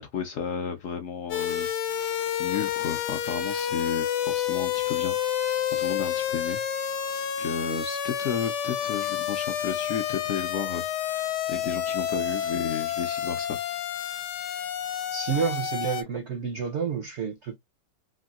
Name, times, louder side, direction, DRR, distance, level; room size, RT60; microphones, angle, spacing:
voice 1, 0.0-1.7 2.4-5.2 5.7-6.6 7.4-13.6, left 7 dB, 70° left, 0.8 m, -33 dB
sound 1, 1.3-16.0, left 9 dB, 85° left, 1.2 m, -29 dB
voice 2, 15.1-17.6, right 6 dB, 75° right, 0.6 m, -29 dB
3.5 x 2.2 x 2.3 m
omnidirectional pair, 1.8 m